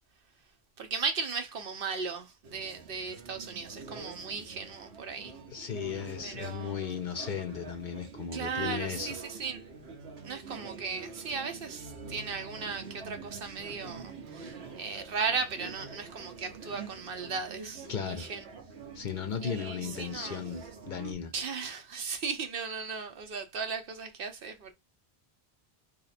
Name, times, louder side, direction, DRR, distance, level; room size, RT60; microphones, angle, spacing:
voice 1, 0.8-5.4 6.2-7.0 8.3-9.7 10.2-18.5 19.4-20.4 21.3-24.7, right 5 dB, 60° right, 0.9 m, -36 dB
sound 1, 2.4-21.1, right 4 dB, 80° right, 1.1 m, -46 dB
voice 2, 5.5-9.1 17.9-18.3 18.9-21.3, left 7 dB, 55° left, 0.7 m, -36 dB
3.0 x 2.9 x 4.1 m
omnidirectional pair, 1.1 m